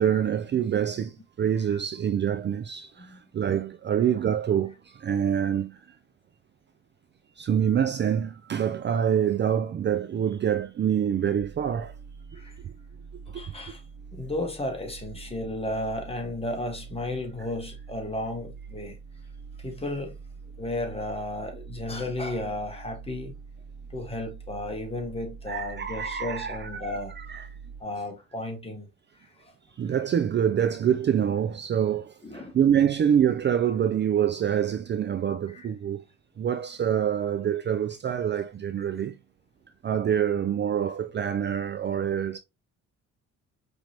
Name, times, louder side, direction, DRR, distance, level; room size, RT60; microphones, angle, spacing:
voice 1, 0.0-5.8 7.4-11.9 12.3-12.7 13.3-13.4 25.5-27.5 29.8-36.0 36.4-39.2 39.8-42.4, right 9 dB, 35° right, 0.4 m, -26 dB
sound 1, 11.4-27.8, right 5 dB, 60° right, 1.7 m, -45 dB
voice 2, 13.3-13.8 14.1-19.0 19.6-20.2 20.6-23.3 23.9-27.1 27.8-28.9 29.2-29.5 29.8-29.9 32.2-32.6 35.5-35.7, left 1 dB, 20° left, 1.7 m, -34 dB
5.0 x 3.3 x 2.9 m
cardioid pair, 90°, 30 cm